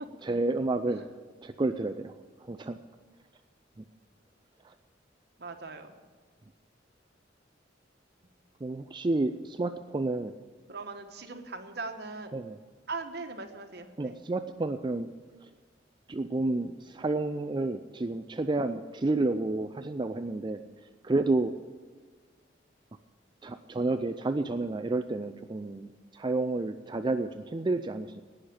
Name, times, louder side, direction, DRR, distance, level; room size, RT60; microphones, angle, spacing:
voice 1, 0.2-1.1 1.4-2.8 3.8-3.9 4.6-4.7 8.6-10.3 12.3-12.6 14.0-15.1 15.4-15.5 16.1-20.6 21.0-21.6 23.4-28.2, right 2 dB, 25° right, 8 dB, 0.4 m, -30 dB
voice 2, 5.4-5.9 10.7-12.3 12.9-14.2, right 3 dB, 60° right, 5 dB, 1.3 m, -40 dB
18.0 x 6.5 x 8.7 m, 1.5 s
head